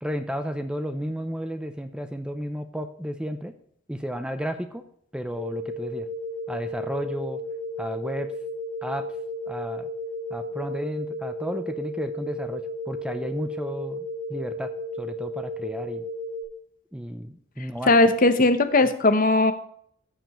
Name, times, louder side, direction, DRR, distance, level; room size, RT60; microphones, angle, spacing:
voice 1, 0.0-3.5 3.9-4.9 5.1-6.1 6.5-7.4 7.8-8.3 8.8-9.1 9.5-9.9 10.3-16.0 16.9-17.9, equal, 5° right, 9 dB, 0.5 m, -33 dB
sound 1, 5.3-16.4, left 1 dB, 70° right, 3.9 m, -34 dB
voice 2, 17.9-19.5, left 2 dB, 45° left, 10 dB, 0.9 m, -18 dB
14.5 x 6.9 x 3.0 m, 0.66 s
head